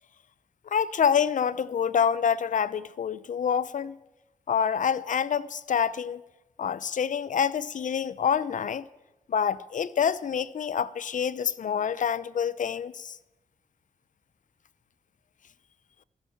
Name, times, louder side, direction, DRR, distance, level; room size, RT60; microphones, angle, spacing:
voice 1, 0.7-4.0 4.5-6.2 6.6-8.9 9.3-13.1, left 7 dB, 65° left, 0.7 m, -27 dB
15.0 x 11.0 x 7.1 m
cardioid pair, 55°, 14 cm